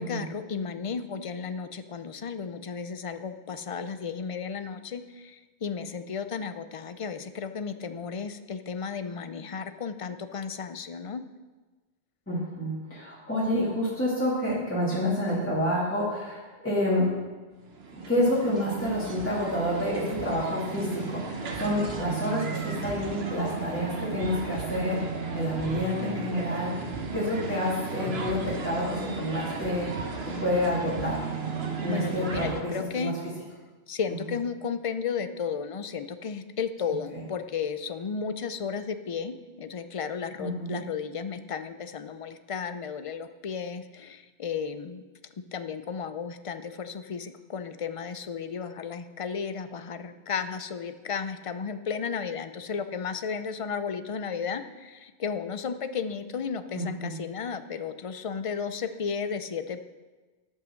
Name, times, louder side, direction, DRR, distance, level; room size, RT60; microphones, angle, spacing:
voice 1, 0.0-11.2 31.9-33.1 33.9-45.0 45.5-59.8, left 6 dB, 45° left, 10 dB, 0.5 m, -34 dB
voice 2, 12.3-17.1 17.9-26.7 27.1-29.9 30.4-31.2 31.8-33.1 37.1-37.2 40.4-40.8 56.7-57.2, left 1 dB, 10° left, -8 dB, 2.3 m, -28 dB
sound 1, 17.7-32.6, right 4 dB, 70° right, 1.3 m, -34 dB
11.0 x 5.6 x 6.4 m, 1.3 s
omnidirectional pair, 1.1 m